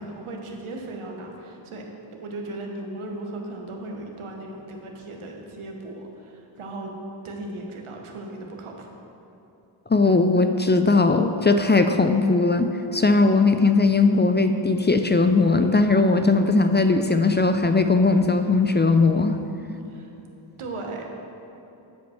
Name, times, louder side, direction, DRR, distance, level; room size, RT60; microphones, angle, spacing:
voice 1, 0.0-6.9 7.2-8.9 19.9-20.1 20.6-21.1, right 2 dB, 90° right, 1 dB, 1.3 m, -36 dB
voice 2, 9.9-19.4, left 3 dB, 25° left, 7 dB, 0.4 m, -19 dB
10.5 x 5.2 x 5.8 m, 2.9 s
cardioid pair, 65°, 48 cm